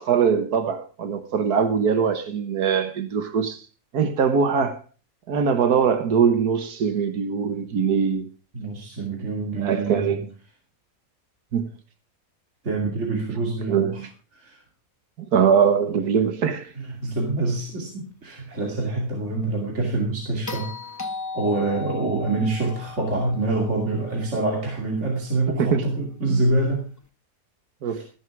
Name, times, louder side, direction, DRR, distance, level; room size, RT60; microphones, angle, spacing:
voice 1, 0.0-3.6 3.9-4.8 5.3-8.3 9.6-10.3 11.5-11.7 13.7-14.1 15.2-16.7 25.6-25.8 26.3-26.4 27.8-28.0, right 6 dB, 90° right, 1.8 m, -22 dB
voice 2, 8.5-10.2 12.6-14.0 14.3-14.6 16.8-20.7 21.3-26.9 27.8-28.0, right 2 dB, 50° right, 3.0 m, -26 dB
sound 1, 20.5-24.7 27.0-27.1, left 3 dB, 15° left, 0.8 m, -37 dB
14.0 x 11.0 x 4.7 m
omnidirectional pair, 1.6 m